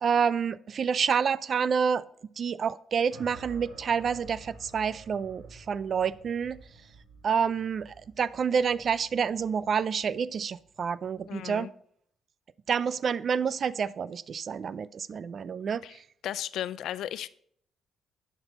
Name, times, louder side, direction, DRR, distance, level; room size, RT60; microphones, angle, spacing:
voice 1, 0.0-2.0 2.4-6.6 7.2-11.7 12.7-16.0, right 6 dB, 50° right, 0.4 m, -28 dB
sound 1, 3.1-11.4, right 3 dB, 90° right, 3.2 m, -51 dB
voice 2, 11.3-11.7 15.8-15.9 16.2-17.3, left 11 dB, 80° left, 0.4 m, -35 dB
10.5 x 6.1 x 4.2 m
cardioid pair, 90°, 0 cm